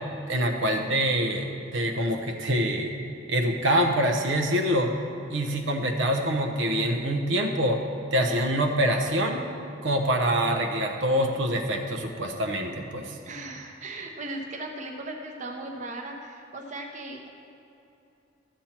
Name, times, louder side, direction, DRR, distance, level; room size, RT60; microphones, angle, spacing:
voice 1, 0.3-2.9 3.3-4.9 5.3-7.8 8.1-9.5 9.8-13.1, equal, 80° right, 3 dB, 0.9 m, -25 dB
voice 2, 13.2-17.3, right 2 dB, 40° right, 1 dB, 0.9 m, -37 dB
12.5 x 7.3 x 4.4 m, 2.8 s
head